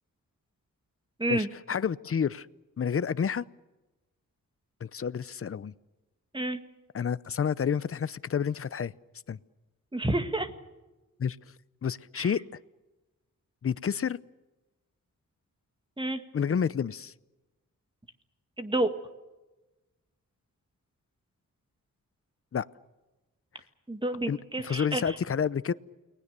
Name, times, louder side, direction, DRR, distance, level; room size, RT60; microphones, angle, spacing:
voice 1, 1.3-2.5 2.8-3.4 4.8-5.7 6.9-8.9 9.3-9.4 11.2-11.4 11.8-12.4 13.6-14.2 16.3-17.1 22.5-22.7 24.3-25.7, left 7 dB, 45° left, 18 dB, 0.7 m, -29 dB
voice 2, 9.9-10.5 12.2-12.3 16.0-16.2 18.6-18.9 23.9-25.0, right 1 dB, 15° right, 8 dB, 1.9 m, -29 dB
29.5 x 20.5 x 6.8 m, 1.1 s
wide cardioid pair, 115°, 32 cm